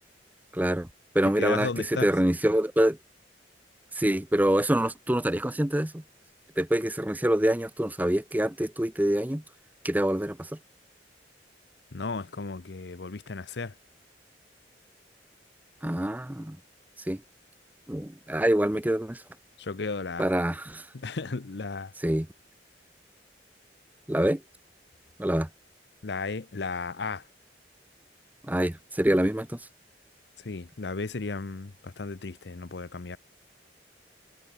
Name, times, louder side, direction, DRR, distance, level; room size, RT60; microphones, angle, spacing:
voice 1, 0.5-0.9 1.1-3.0 3.9-6.0 6.6-9.4 9.8-10.5 15.8-16.6 17.1-17.2 17.9-19.2 20.2-20.9 22.0-22.3 24.1-24.4 25.2-25.5 28.4-29.6, right 1 dB, 10° right, 0.8 m, -25 dB
voice 2, 1.2-2.1 11.9-13.7 19.6-20.3 20.9-21.9 26.0-27.2 30.4-33.2, left 4 dB, 70° left, 0.8 m, -34 dB
head